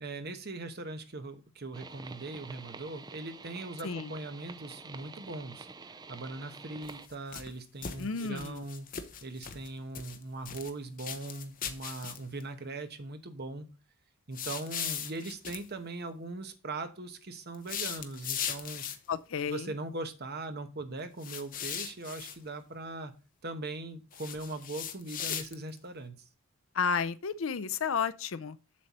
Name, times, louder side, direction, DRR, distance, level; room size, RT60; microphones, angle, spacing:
voice 1, 0.0-5.7 6.1-8.9 9.2-13.7 14.3-18.9 19.5-23.1 23.4-26.2, right 2 dB, 45° right, 1.1 m, -40 dB
sound 1, 1.7-7.1, right 4 dB, 20° right, 0.4 m, -48 dB
sound 2, 6.8-7.5 7.8-9.7 9.9-10.7 11.0-12.4 14.3-15.6 17.5-19.1 21.2-22.4 24.1-25.8, left 8 dB, 40° left, 0.9 m, -38 dB
voice 2, 8.0-8.6 19.1-19.7 26.7-28.6, left 6 dB, 60° left, 0.5 m, -32 dB
7.5 x 6.6 x 4.2 m
head